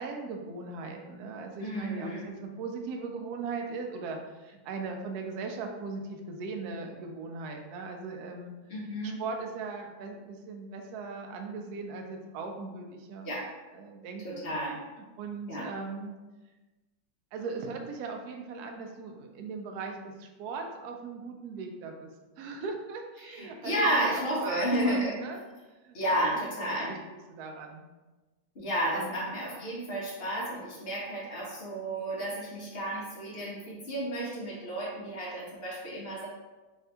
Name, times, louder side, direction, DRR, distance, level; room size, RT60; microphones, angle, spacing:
voice 1, 0.0-8.5 9.0-13.3 13.7-14.5 15.2-16.2 17.3-22.1 22.4-25.4 25.8-26.0 26.9-27.0 27.3-27.9 28.9-29.3, right 4 dB, 80° right, 3 dB, 0.8 m, -39 dB
voice 2, 1.6-2.3 8.7-9.2 13.2-13.5 14.2-14.8 15.5-15.7 23.2-25.2 25.9-27.0 28.5-36.3, right 1 dB, 45° left, -5 dB, 0.8 m, -32 dB
3.4 x 2.7 x 3.3 m, 1.2 s
omnidirectional pair, 2.1 m